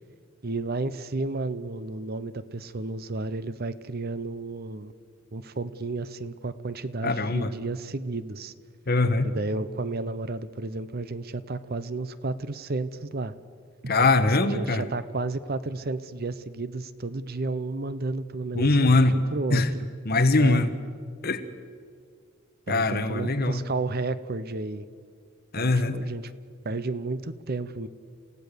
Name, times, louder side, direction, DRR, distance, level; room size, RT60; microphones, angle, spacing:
voice 1, 0.4-4.9 5.3-8.5 9.2-13.3 13.8-14.0 14.4-19.9 20.4-20.6 22.7-24.8 25.6-26.3 26.6-27.9, right 3 dB, 50° right, 14 dB, 0.8 m, -32 dB
voice 2, 7.0-7.5 8.9-9.3 13.9-14.8 18.5-19.1 19.5-19.7 20.0-20.7 21.2-21.5 22.7-23.6 25.5-26.0, left 2 dB, 50° left, 9 dB, 1.3 m, -22 dB
29.0 x 16.5 x 6.8 m, 2.1 s
head